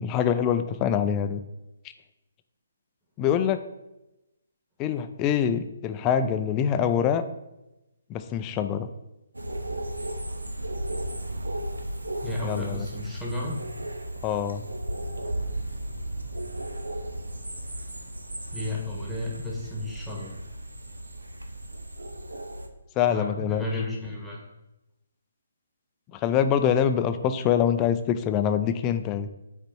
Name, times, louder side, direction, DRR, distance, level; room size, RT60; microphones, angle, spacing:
voice 1, 0.0-1.4 3.2-3.6 4.8-7.2 8.1-8.9 12.4-12.9 14.2-14.6 23.0-23.6 26.1-29.3, left 8 dB, 20° left, 9 dB, 0.4 m, -24 dB
sound 1, 9.3-22.7, right 1 dB, 85° right, 0.7 m, -35 dB
voice 2, 12.2-13.6 18.5-20.4 23.1-24.4, left 2 dB, ahead, -5 dB, 1.3 m, -33 dB
5.2 x 4.3 x 4.4 m, 0.94 s
figure-of-eight pair, 140°, 0 cm